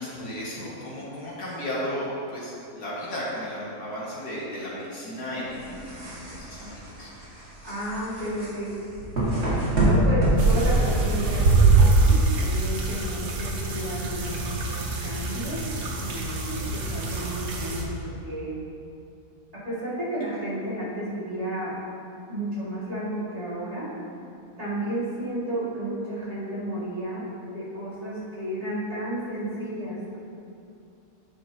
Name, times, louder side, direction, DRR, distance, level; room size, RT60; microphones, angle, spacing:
voice 1, 0.0-7.1 16.9-17.2, equal, 70° left, -7 dB, 2.3 m, -34 dB
sound 1, 5.5-11.4, right 1 dB, 40° right, 1.9 m, -25 dB
voice 2, 7.6-8.8 9.8-15.7 16.0-18.5 19.5-21.8 22.3-23.9 24.6-27.3 27.5-30.2, right 1 dB, 25° right, -9 dB, 2.0 m, -32 dB
sound 2, 10.4-17.8, right 3 dB, 85° right, 1.5 m, -23 dB
9.8 x 6.0 x 2.8 m, 2.6 s
omnidirectional pair, 1.7 m